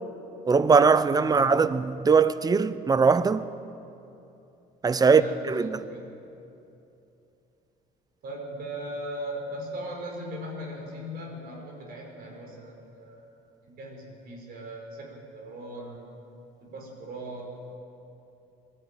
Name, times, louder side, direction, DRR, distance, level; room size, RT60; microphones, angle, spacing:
voice 1, 0.5-3.4 4.8-5.8, right 5 dB, 20° right, 0.7 m, -21 dB
voice 2, 4.9-6.1 8.2-13.3 13.6-16.1 16.6-17.5, right 1 dB, 65° right, 5.3 m, -39 dB
21.5 x 13.5 x 9.1 m
cardioid pair, 110°, 17 cm